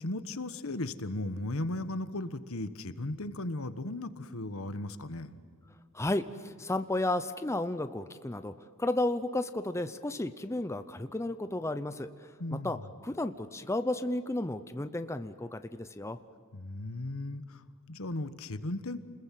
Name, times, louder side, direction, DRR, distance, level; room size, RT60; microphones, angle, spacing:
voice 1, 0.0-5.3 12.4-12.8 16.5-19.0, left 2 dB, 70° left, 11 dB, 1.3 m, -36 dB
voice 2, 5.9-8.5 8.8-12.1 12.6-12.8 13.0-16.2, left 1 dB, 15° left, 10 dB, 0.7 m, -33 dB
29.5 x 21.0 x 7.6 m, 2.1 s
head